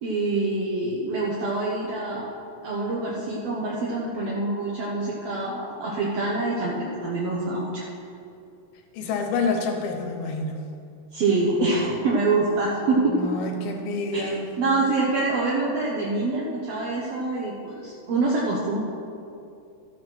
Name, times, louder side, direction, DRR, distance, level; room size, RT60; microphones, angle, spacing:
voice 1, 0.0-2.3 2.6-7.8 11.1-13.3 14.1-18.8, right 3 dB, 70° right, -4 dB, 1.6 m, -25 dB
voice 2, 8.9-10.6 13.1-14.6, left 3 dB, 85° left, 3 dB, 3.0 m, -28 dB
13.0 x 6.3 x 6.2 m, 2.6 s
omnidirectional pair, 4.3 m